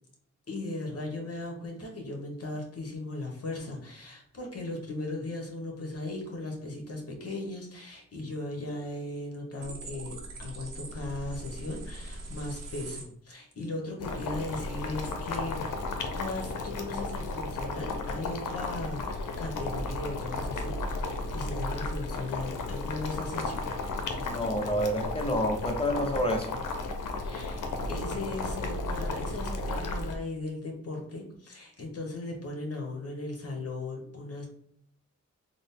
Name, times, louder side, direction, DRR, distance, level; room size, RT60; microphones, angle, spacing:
voice 1, 0.5-15.6 16.1-23.6 27.2-27.6 27.9-34.5, left 2 dB, 50° left, 1 dB, 1.2 m, -37 dB
sound 1, 9.6-13.0, right 2 dB, 75° right, 1.0 m, -41 dB
Boiling, 14.0-30.1, left 2 dB, 75° left, 0.6 m, -34 dB
voice 2, 24.2-26.6, equal, 20° left, 3 dB, 0.7 m, -29 dB
3.8 x 2.1 x 3.6 m, 0.68 s
cardioid pair, 60°, 32 cm